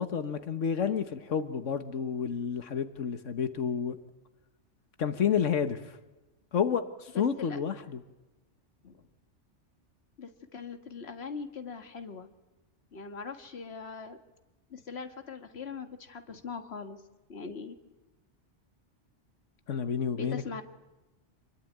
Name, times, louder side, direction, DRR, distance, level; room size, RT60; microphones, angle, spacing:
voice 1, 0.0-4.0 5.0-6.0 6.5-8.0 19.7-20.4, left 7 dB, 90° left, 9 dB, 1.6 m, -30 dB
voice 2, 7.1-7.6 8.8-9.1 10.2-12.3 12.9-14.2 14.7-17.0 17.3-17.8 20.2-20.6, left 5 dB, 60° left, 7 dB, 1.9 m, -41 dB
26.5 x 22.5 x 9.3 m, 1.1 s
omnidirectional pair, 1.2 m